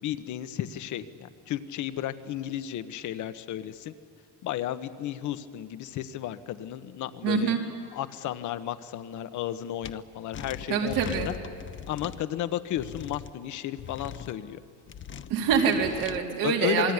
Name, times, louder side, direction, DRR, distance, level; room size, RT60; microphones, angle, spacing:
voice 1, 0.0-3.9 4.4-7.6 7.9-11.3 11.9-14.6 16.4-16.9, left 11 dB, 65° left, 12 dB, 1.4 m, -33 dB
voice 2, 7.2-7.6 10.7-11.3 15.3-16.9, right 6 dB, 85° right, 1 dB, 4.2 m, -25 dB
sound 1, 9.8-9.9 10.3-12.2 12.8-13.3 13.8-14.4 14.9-16.2, left 8 dB, 35° left, 1.0 m, -40 dB
27.5 x 22.0 x 9.9 m, 2.3 s
cardioid pair, 125°, 32 cm